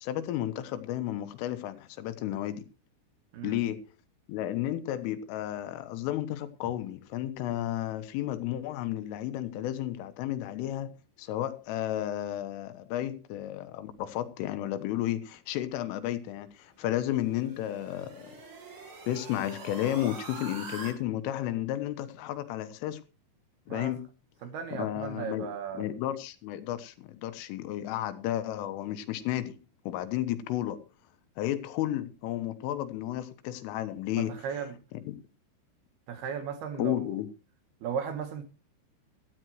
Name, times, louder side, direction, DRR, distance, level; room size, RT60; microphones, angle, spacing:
voice 1, 0.0-2.6 3.4-3.8 4.3-10.9 11.2-18.4 19.1-23.0 23.7-24.0 24.7-25.5 25.8-29.6 29.9-30.8 31.4-34.3 35.1-35.2 36.8-37.3, left 13 dB, 85° left, 3.7 m, -32 dB
sound 1, 17.0-20.9, right 3 dB, 35° right, 2.6 m, -44 dB
voice 2, 24.4-25.9 34.2-34.8 36.1-37.2 37.8-38.4, right 7 dB, 70° right, 2.8 m, -36 dB
17.0 x 14.0 x 3.1 m
omnidirectional pair, 5.8 m